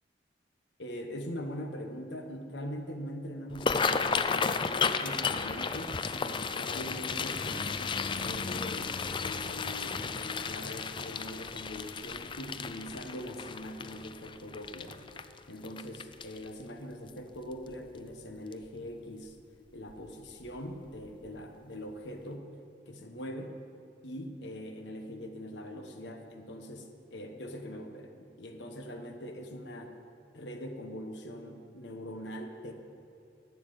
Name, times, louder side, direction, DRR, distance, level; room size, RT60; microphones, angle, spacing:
voice 1, 0.8-15.0 15.5-19.4 19.7-22.5 22.9-23.6 24.0-30.0 30.3-32.7, equal, 75° left, 5 dB, 1.2 m, -42 dB
sound 1, 3.5-16.6 17.1-17.4 17.7-18.1 18.5-18.7 19.9-20.1 20.4-20.6 21.0-21.1, left 5 dB, 25° left, 0.4 m, -33 dB
11.0 x 9.6 x 6.9 m, 2.5 s
head